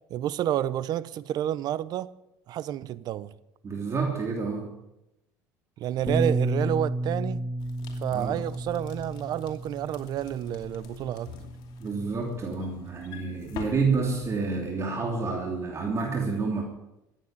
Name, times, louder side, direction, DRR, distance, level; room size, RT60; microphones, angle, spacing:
voice 1, 0.1-2.1 2.5-3.3 5.8-7.4 8.0-11.4, right 11 dB, 55° right, 0.7 m, -30 dB
voice 2, 3.6-4.7 8.1-8.4 11.8-16.6, right 4 dB, 35° right, 3.1 m, -29 dB
Bass guitar, 6.1-12.3, right 1 dB, 5° right, 2.2 m, -32 dB
sound 1, 7.6-14.3, left 7 dB, 65° left, 2.7 m, -46 dB
14.5 x 9.1 x 9.1 m
supercardioid pair, 95°, 8 cm